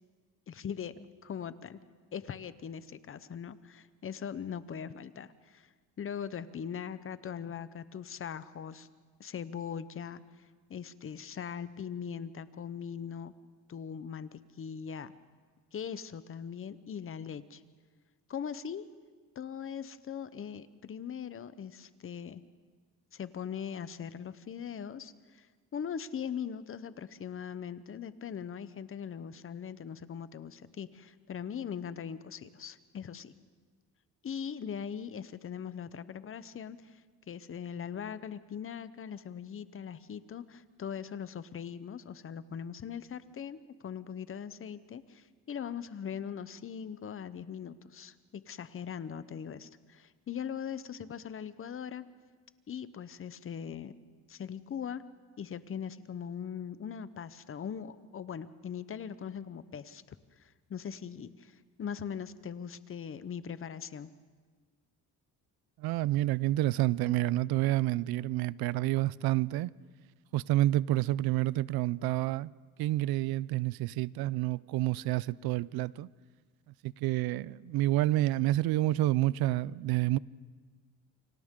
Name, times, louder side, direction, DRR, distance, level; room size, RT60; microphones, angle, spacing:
voice 1, 0.5-1.8 2.1-5.7 6.0-8.9 9.2-10.2 10.7-13.3 13.7-14.3 14.6-15.1 15.7-17.6 18.3-18.9 19.4-22.4 23.1-25.5 25.7-33.3 34.2-37.0 37.3-52.1 52.7-53.9 54.3-55.0 55.4-64.1, left 7 dB, 35° left, 0.9 m, -40 dB
voice 2, 65.8-69.7 70.3-72.5 72.8-76.1 76.8-80.2, right 16 dB, 75° right, 0.5 m, -29 dB
29.0 x 24.5 x 3.8 m
cardioid pair, 110°, 37 cm